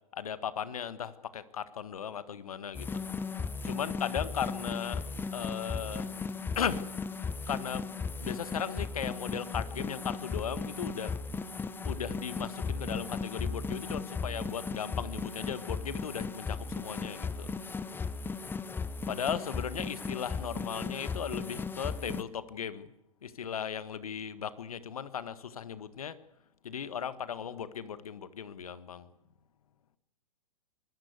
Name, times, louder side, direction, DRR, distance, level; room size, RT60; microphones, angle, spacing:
voice 1, 0.1-3.0 3.3-5.0 5.3-6.1 6.5-6.8 7.5-7.9 8.2-11.2 11.8-17.6 19.1-22.9 23.2-26.2 26.6-29.1, left 8 dB, 80° left, 14 dB, 1.6 m, -37 dB
sound 1, 2.7-22.2, left 4 dB, 10° left, 0.9 m, -36 dB
25.0 x 15.0 x 8.3 m, 0.85 s
hypercardioid pair, 120°, 18 cm